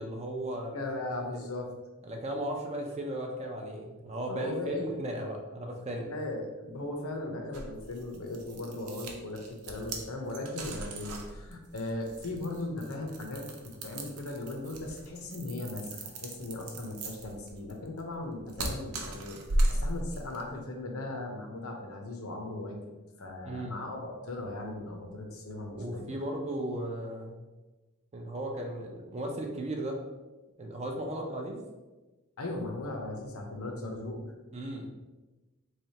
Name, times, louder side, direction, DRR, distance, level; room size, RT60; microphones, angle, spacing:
voice 1, 0.0-0.7 2.0-6.1 23.4-23.8 25.8-27.4 28.1-30.0 30.6-31.6 34.5-34.9, right 1 dB, 30° right, 1 dB, 0.4 m, -36 dB
voice 2, 0.7-1.7 4.3-5.0 6.0-22.8 23.2-26.1 32.4-34.3, left 2 dB, 70° left, 2 dB, 0.7 m, -38 dB
sound 1, 7.5-20.5, right 1 dB, 85° right, 0.6 m, -36 dB
3.8 x 3.3 x 2.8 m, 1.2 s
head